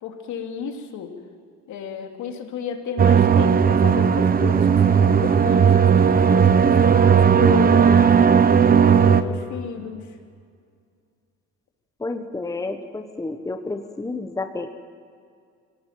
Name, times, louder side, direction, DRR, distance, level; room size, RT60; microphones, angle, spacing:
voice 1, 0.0-1.1 1.7-10.2, left 7 dB, 65° left, 4 dB, 3.1 m, -34 dB
sound 1, 3.0-9.2, right 7 dB, 30° right, 1.1 m, -16 dB
voice 2, 12.0-14.7, left 3 dB, 10° left, 7 dB, 1.3 m, -30 dB
25.5 x 18.0 x 7.6 m, 2.2 s
cardioid pair, 115°, 32 cm